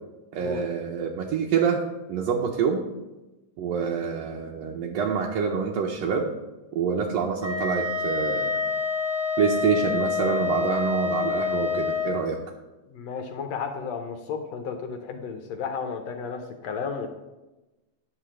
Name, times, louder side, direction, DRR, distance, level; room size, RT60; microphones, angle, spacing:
voice 1, 0.3-1.8 2.1-2.8 3.6-6.3 6.7-8.6 9.4-12.4, right 6 dB, 75° right, 0 dB, 1.6 m, -26 dB
Wind instrument woodwind instrument, 7.4-12.2, left 5 dB, 35° left, 1.2 m, -27 dB
voice 2, 12.9-17.1, left 6 dB, 75° left, 6 dB, 1.6 m, -33 dB
10.0 x 4.8 x 7.4 m, 1.1 s
omnidirectional pair, 3.8 m